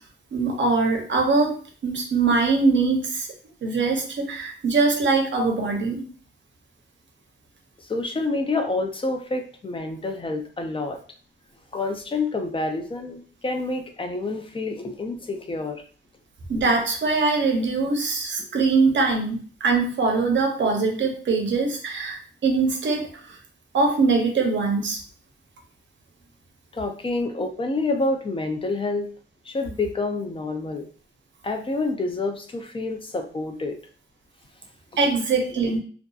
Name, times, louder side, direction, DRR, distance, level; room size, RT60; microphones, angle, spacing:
voice 1, 0.3-1.5 1.8-3.3 3.6-6.0 16.5-23.4 23.7-25.0 35.0-35.8, right 4 dB, 65° right, 3 dB, 0.7 m, -22 dB
voice 2, 7.8-11.0 11.7-15.8 18.4-18.5 26.7-29.1 29.5-30.9 31.4-33.8 35.6-35.8, left 3 dB, 25° left, 5 dB, 0.4 m, -28 dB
2.5 x 2.3 x 2.3 m, 0.42 s
wide cardioid pair, 110°, 20 cm